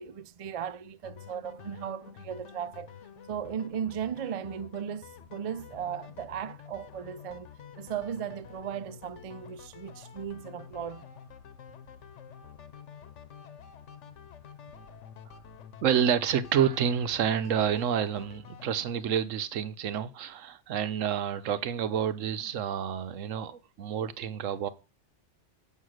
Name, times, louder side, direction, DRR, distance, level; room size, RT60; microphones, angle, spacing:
voice 1, 0.0-2.9 3.3-11.0, right 8 dB, 55° right, 0.4 m, -37 dB
sound 1, 1.0-18.7, left 7 dB, 70° left, 1.1 m, -49 dB
voice 2, 15.8-24.7, right 8 dB, 85° right, 1.1 m, -29 dB
7.2 x 5.7 x 6.4 m
omnidirectional pair, 1.3 m